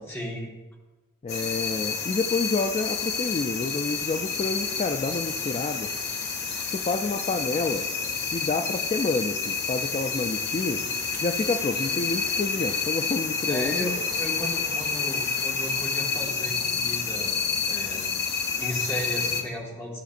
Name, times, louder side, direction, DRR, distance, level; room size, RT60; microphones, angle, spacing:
voice 1, 0.1-0.5 13.5-17.4 17.7-18.1 18.6-20.0, equal, 10° left, -3 dB, 1.5 m, -35 dB
voice 2, 1.2-5.9 6.7-7.9 8.3-10.9 11.2-13.9, left 3 dB, 30° left, 5 dB, 0.3 m, -28 dB
sound 1, 1.3-19.4, left 5 dB, 55° left, 0.9 m, -29 dB
13.0 x 6.0 x 2.5 m, 1.2 s
head